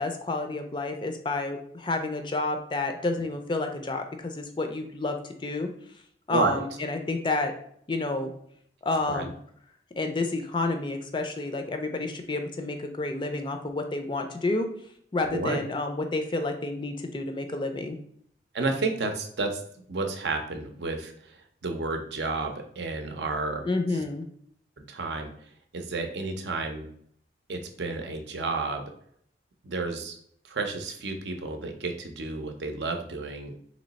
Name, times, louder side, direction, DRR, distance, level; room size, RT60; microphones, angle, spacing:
voice 1, 0.0-5.2 5.4-5.7 6.3-7.5 7.9-8.3 8.8-9.3 10.0-14.7 15.1-18.0 23.6-24.2, left 2 dB, 25° left, 6 dB, 0.4 m, -29 dB
voice 2, 18.5-19.6 19.9-23.7 23.9-24.0 24.9-25.3 25.7-26.9 27.5-28.8 29.6-30.2 30.4-33.5, right 3 dB, 75° right, 5 dB, 0.6 m, -31 dB
3.1 x 3.0 x 4.0 m, 0.65 s
head